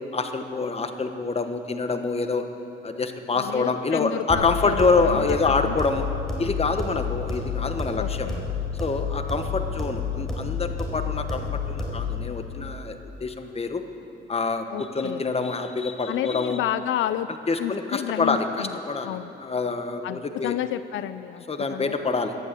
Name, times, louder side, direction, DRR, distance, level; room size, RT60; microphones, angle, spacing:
voice 1, 0.1-2.5 2.8-6.1 6.4-8.3 8.8-13.8 14.3-16.6 17.5-20.6 21.5-22.4, left 4 dB, 30° left, 7 dB, 1.2 m, -26 dB
voice 2, 3.3-5.9 8.0-8.4 14.7-15.2 16.1-17.3 17.6-18.7 19.0-19.3 20.0-21.4 21.7-21.9, left 12 dB, 80° left, 13 dB, 0.5 m, -31 dB
sound 1, 4.3-12.3, left 5 dB, ahead, 3.9 m, -30 dB
15.0 x 10.5 x 8.4 m, 2.9 s
cardioid pair, 90°, 20 cm